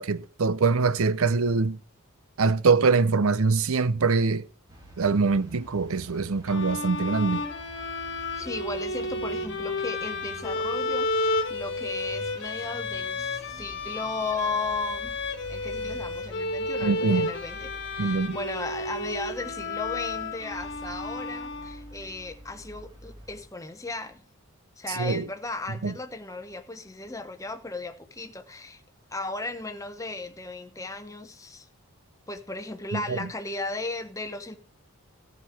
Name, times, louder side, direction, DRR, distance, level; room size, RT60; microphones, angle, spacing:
voice 1, 0.0-1.8 2.4-4.5 5.0-7.4 16.8-17.3 18.0-18.4 24.9-25.2 25.8-25.9 32.9-33.3, right 4 dB, 70° right, 0.6 m, -24 dB
sound 1, 4.7-23.5, equal, 20° right, 4.0 m, -48 dB
sound 2, 6.5-22.1, left 2 dB, 55° left, 1.4 m, -32 dB
voice 2, 8.4-15.2 15.5-24.2 24.8-28.8 29.1-31.7 32.3-34.6, left 3 dB, 15° left, 0.9 m, -35 dB
14.0 x 5.1 x 7.2 m
head